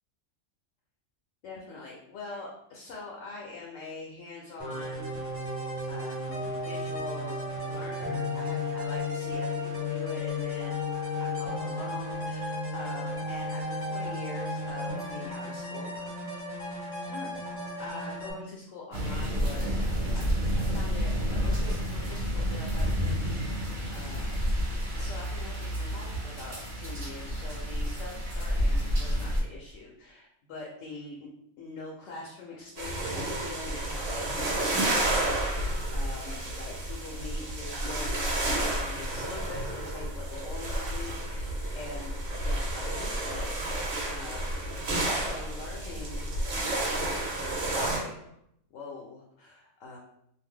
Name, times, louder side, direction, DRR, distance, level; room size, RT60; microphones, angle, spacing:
voice 1, 1.4-10.8 11.2-16.3 17.0-17.5 17.8-19.8 20.1-20.4 20.7-31.3 31.6-44.6 45.1-46.3 46.8-48.4 48.7-50.0, left 3 dB, 80° left, -2 dB, 1.0 m, -44 dB
sound 1, 4.6-18.3, left 2 dB, 15° right, 0.7 m, -34 dB
sound 2, 18.9-29.4, equal, 45° right, 0.9 m, -29 dB
sound 3, 32.8-48.0, right 1 dB, 75° right, 1.1 m, -31 dB
2.7 x 2.0 x 3.5 m, 0.75 s
omnidirectional pair, 1.3 m